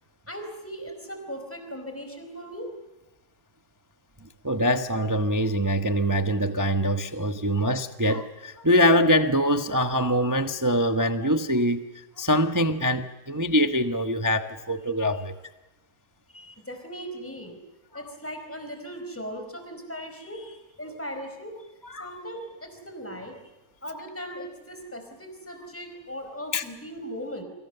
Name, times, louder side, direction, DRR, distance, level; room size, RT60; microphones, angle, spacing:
voice 1, 0.3-2.7 16.3-17.6 17.9-21.5 21.9-23.5 23.8-27.4, equal, 5° left, 6 dB, 4.6 m, -38 dB
voice 2, 4.4-15.3 21.8-22.1 26.5-26.6, equal, 15° right, 7 dB, 0.7 m, -24 dB
29.0 x 25.5 x 6.8 m, 1.0 s
omnidirectional pair, 2.1 m